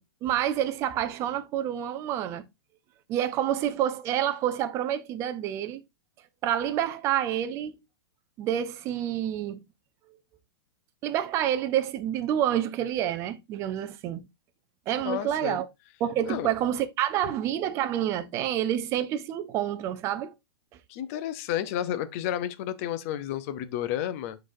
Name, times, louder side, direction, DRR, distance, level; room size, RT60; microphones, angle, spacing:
voice 1, 0.2-2.4 3.1-5.8 6.4-7.8 8.4-9.6 11.0-14.3 14.9-15.7 16.0-20.3, right 11 dB, 20° right, 0.6 m, -28 dB
voice 2, 15.0-15.6 16.3-16.5 20.9-24.4, left 11 dB, 35° left, 0.6 m, -31 dB
11.5 x 4.0 x 2.6 m
hypercardioid pair, 165°, 13 cm